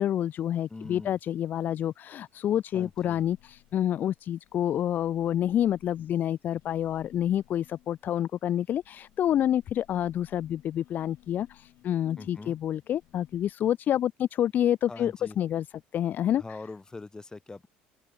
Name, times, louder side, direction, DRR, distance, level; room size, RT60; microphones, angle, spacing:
voice 1, 0.0-15.7 15.9-16.4, left 11 dB, 50° left, 0.3 m, -28 dB
voice 2, 0.7-1.2 2.7-3.2 12.2-12.6 14.9-15.4 16.4-17.7, left 3 dB, 15° left, 1.2 m, -42 dB
sound 1, 2.3-8.4 8.7-13.5, left 16 dB, 65° left, 1.1 m, -59 dB
open air
supercardioid pair, 90°, 4 cm